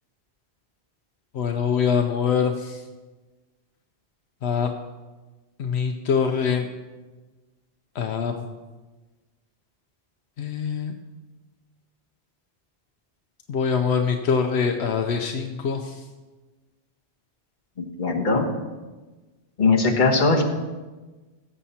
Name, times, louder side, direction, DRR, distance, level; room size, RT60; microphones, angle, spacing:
voice 1, 1.3-2.8 4.4-4.7 5.6-6.7 7.9-8.4 10.4-10.9 13.5-16.0, left 6 dB, 75° left, 5 dB, 1.0 m, -24 dB
voice 2, 18.0-18.5 19.6-20.4, left 3 dB, 45° left, 1 dB, 1.4 m, -19 dB
16.5 x 7.2 x 4.3 m, 1.3 s
omnidirectional pair, 1.1 m